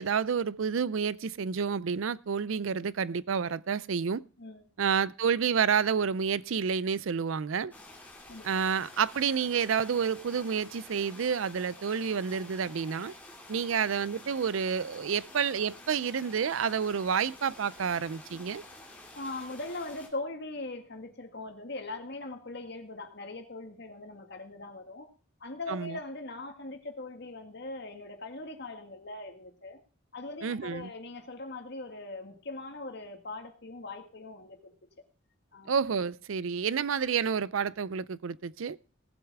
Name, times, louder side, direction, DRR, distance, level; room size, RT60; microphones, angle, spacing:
voice 1, 0.0-4.2 4.8-7.7 8.4-13.1 13.5-18.6 25.7-26.0 30.4-30.9 35.7-38.8, right 6 dB, 75° right, 0.5 m, -29 dB
sound 1, 7.7-20.1, left 2 dB, 10° left, 2.7 m, -50 dB
voice 2, 19.1-25.1 25.4-29.8 30.1-34.7 35.5-35.7, left 2 dB, 55° left, 1.8 m, -40 dB
18.5 x 8.0 x 3.5 m
head